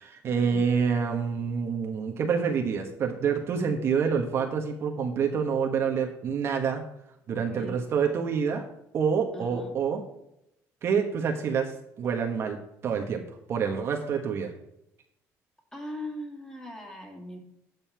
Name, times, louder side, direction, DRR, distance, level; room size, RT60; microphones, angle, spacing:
voice 1, 0.0-6.8 7.3-8.6 8.9-10.0 10.8-11.7 12.0-12.6 12.8-13.2 13.5-14.5, right 6 dB, 45° right, 3 dB, 1.2 m, -27 dB
voice 2, 7.5-7.8 9.3-9.8 15.7-17.4, left 1 dB, 10° left, 0 dB, 2.3 m, -40 dB
9.3 x 5.4 x 5.6 m, 0.83 s
cardioid pair, 140°, 6 cm